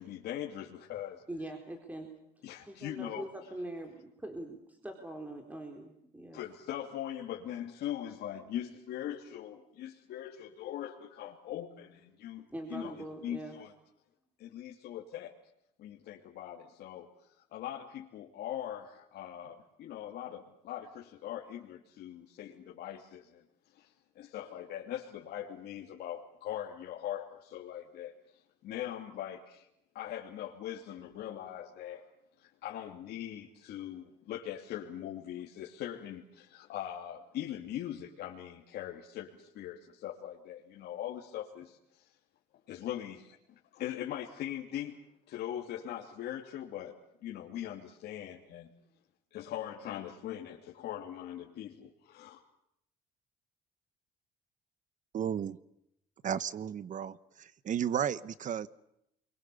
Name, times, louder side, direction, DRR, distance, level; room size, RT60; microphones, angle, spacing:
voice 1, 0.0-1.2 2.4-3.2 6.3-13.7 14.4-15.3 15.8-17.1 17.4-23.4 23.7-28.1 28.6-29.7 29.9-32.0 32.4-42.1 42.7-45.0 45.3-47.0 47.2-48.7 49.3-52.4, left 11 dB, 75° left, -1 dB, 3.0 m, -41 dB
voice 2, 1.3-2.1 2.4-6.4 12.5-13.6, right 1 dB, 10° right, 3 dB, 4.1 m, -43 dB
voice 3, 55.1-55.6 56.2-58.7, right 9 dB, 50° right, 16 dB, 1.2 m, -33 dB
30.0 x 23.0 x 7.1 m, 0.78 s
cardioid pair, 110°, 17 cm